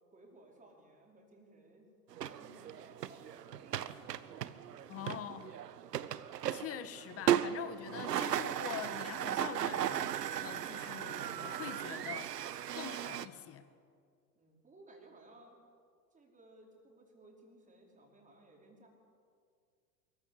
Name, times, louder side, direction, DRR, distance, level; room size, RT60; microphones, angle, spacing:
voice 1, 0.1-1.9 2.3-4.8 14.3-15.6 16.1-18.9, right 2 dB, 15° right, -1 dB, 5.0 m, -60 dB
sound 1, 2.1-13.3, right 10 dB, 75° right, 0.9 m, -37 dB
voice 2, 4.9-5.6 6.5-12.3 12.7-13.7, left 10 dB, 30° left, 12 dB, 1.4 m, -45 dB
23.5 x 15.0 x 8.7 m, 2.2 s
figure-of-eight pair, 95°, 49 cm